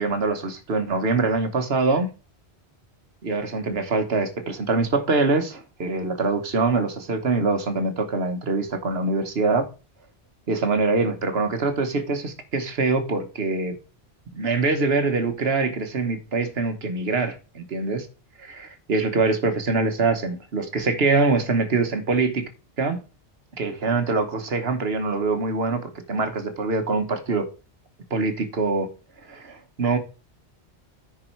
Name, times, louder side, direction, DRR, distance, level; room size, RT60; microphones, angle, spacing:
voice 1, 0.0-2.1 3.2-9.7 10.5-13.8 14.3-18.1 18.4-22.5 22.8-23.0 23.6-27.5 28.1-28.9 29.3-30.0, right 3 dB, 65° right, 1.5 m, -24 dB
9.7 x 4.8 x 4.5 m
omnidirectional pair, 1.1 m